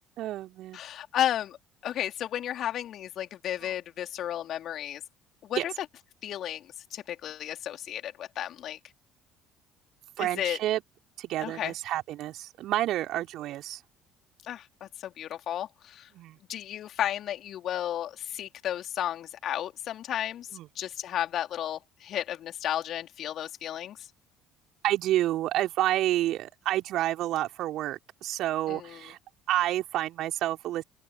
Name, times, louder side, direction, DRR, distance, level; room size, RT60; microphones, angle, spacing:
voice 1, 0.2-0.8 3.6-3.7 5.6-5.7 10.2-10.8 11.2-13.8 16.1-16.4 20.5-20.7 24.8-29.2 29.5-30.8, right 14 dB, 55° right, 3.7 m, -29 dB
voice 2, 0.7-1.6 1.8-5.0 5.4-5.7 6.2-8.8 10.2-10.6 11.4-11.7 14.4-16.1 16.5-20.5 20.8-24.1 28.7-29.0, left 11 dB, 50° left, 3.8 m, -33 dB
open air
figure-of-eight pair, 55°, 0 cm